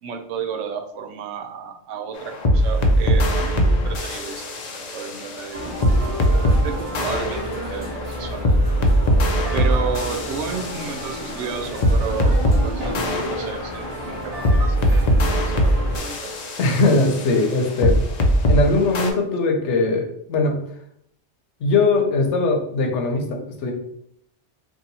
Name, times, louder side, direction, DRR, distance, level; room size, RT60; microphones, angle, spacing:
voice 1, 0.0-5.9 6.6-8.5 9.5-16.3, right 6 dB, 90° right, 6 dB, 0.9 m, -32 dB
sound 1, 2.2-6.6 6.9-12.6 12.9-18.6 18.9-19.1, equal, 50° left, 0.5 m, -21 dB
sound 2, 5.5-16.0, equal, 35° right, 1.0 m, -31 dB
voice 2, 16.6-18.0 18.5-20.6 21.6-23.7, left 3 dB, 75° left, 3 dB, 1.0 m, -20 dB
2.8 x 2.7 x 3.9 m, 0.70 s
omnidirectional pair, 1.2 m